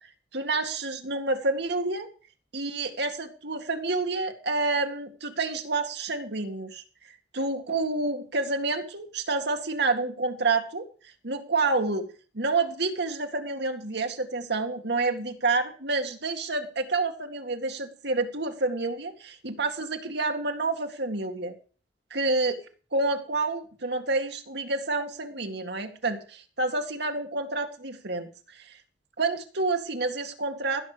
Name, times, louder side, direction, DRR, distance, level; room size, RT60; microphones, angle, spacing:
voice 1, 0.3-2.1 2.5-6.8 7.3-10.9 11.2-12.1 12.3-21.5 22.1-22.6 22.9-28.3 29.2-30.8, right 3 dB, 65° right, 5 dB, 2.1 m, -28 dB
15.5 x 6.5 x 6.8 m, 0.39 s
head